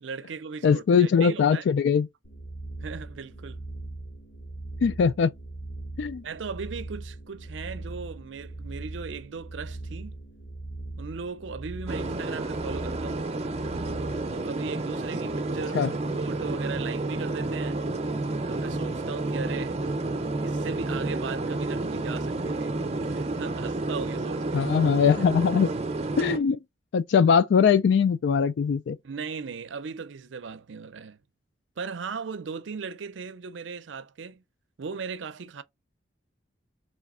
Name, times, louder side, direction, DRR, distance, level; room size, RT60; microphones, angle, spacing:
voice 1, 0.0-1.6 2.8-3.6 6.2-10.2 11.0-13.3 14.3-15.9 16.1-17.8 18.5-19.8 20.4-22.8 23.1-24.7 29.0-31.2 31.8-34.4 34.8-35.6, right 5 dB, 80° right, 0.5 m, -37 dB
voice 2, 0.6-2.1 4.8-5.3 6.0-6.2 15.7-15.9 24.5-25.7 26.2-26.6 26.9-29.0, left 6 dB, 70° left, 0.3 m, -21 dB
sound 1, 2.2-14.4, right 2 dB, 90° left, 2.0 m, -40 dB
sound 2, 11.9-26.4, right 2 dB, 35° right, 0.6 m, -30 dB
4.1 x 3.3 x 3.6 m
head